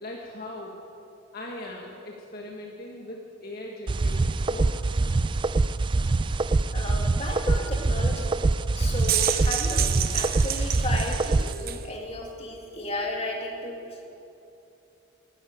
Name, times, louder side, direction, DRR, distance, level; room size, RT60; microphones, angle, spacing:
voice 1, 0.0-0.8 1.3-5.1, left 1 dB, 50° left, -2 dB, 1.5 m, -40 dB
sound 1, 3.9-11.5, right 3 dB, 25° right, 0.3 m, -24 dB
voice 2, 6.7-8.4 8.7-9.9 10.1-14.0, left 1 dB, 30° left, 0 dB, 2.2 m, -34 dB
sound 2, 8.8-11.8, right 11 dB, 45° right, 0.7 m, -29 dB
12.5 x 11.5 x 9.2 m, 2.8 s
head